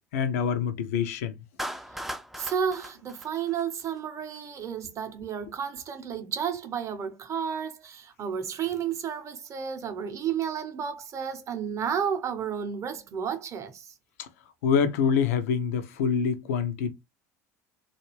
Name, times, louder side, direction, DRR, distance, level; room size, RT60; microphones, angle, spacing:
voice 1, 0.1-1.4 14.2-14.3 14.6-16.9, left 6 dB, 70° left, 0.5 m, -26 dB
Clapping, 1.6-4.0, equal, ahead, 0.3 m, -38 dB
voice 2, 2.4-13.9, right 7 dB, 40° right, 0.7 m, -32 dB
2.3 x 2.3 x 3.0 m
figure-of-eight pair, 65°, 8 cm